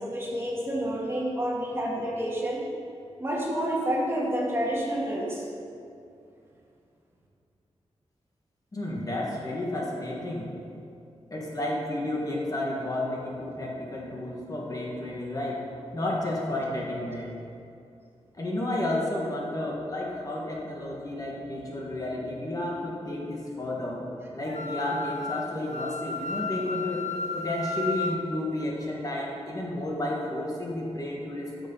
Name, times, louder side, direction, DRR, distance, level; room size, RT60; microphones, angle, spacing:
voice 1, 0.0-2.6 3.2-5.4, equal, 20° right, -4 dB, 2.1 m, -29 dB
voice 2, 8.7-10.5 11.3-17.3 18.4-24.1 24.3-27.1 27.3-31.7, left 1 dB, 30° left, -3 dB, 1.6 m, -31 dB
Wind instrument woodwind instrument, 24.5-28.2, left 3 dB, 80° left, 1.0 m, -33 dB
13.0 x 6.6 x 5.4 m, 2.5 s
wide cardioid pair, 130°, 11 cm